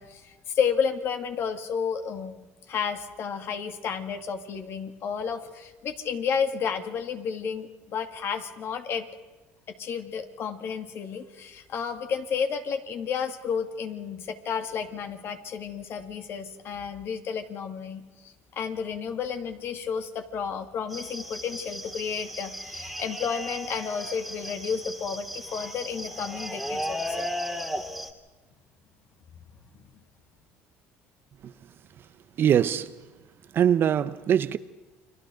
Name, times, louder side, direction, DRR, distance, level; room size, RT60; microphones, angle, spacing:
voice 1, 0.0-9.1 9.8-27.3, left 6 dB, 50° left, 2.5 m, -31 dB
sound 1, 20.9-28.1, equal, ahead, 2.5 m, -35 dB
voice 2, 32.4-32.9 33.5-34.6, right 9 dB, 45° right, 0.9 m, -22 dB
30.0 x 23.5 x 3.9 m
supercardioid pair, 100°, 5 cm